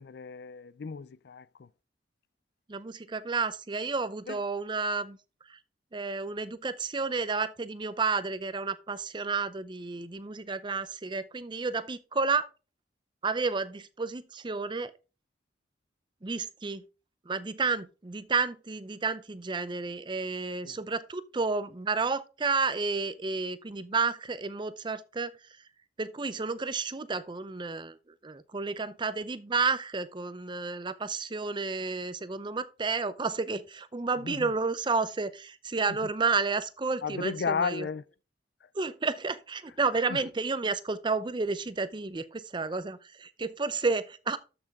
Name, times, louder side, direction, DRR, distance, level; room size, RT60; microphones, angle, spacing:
voice 1, 0.0-1.7 4.3-4.4 20.6-20.8 34.2-34.5 35.9-36.0 37.0-38.0 40.1-40.2, left 5 dB, 65° left, 0.4 m, -34 dB
voice 2, 2.7-5.2 5.5-5.6 5.9-12.5 13.2-14.9 16.2-16.8 17.3-25.3 26.0-28.0 28.2-37.9 38.7-44.4, right 4 dB, 25° right, 0.5 m, -31 dB
13.0 x 6.0 x 3.5 m
head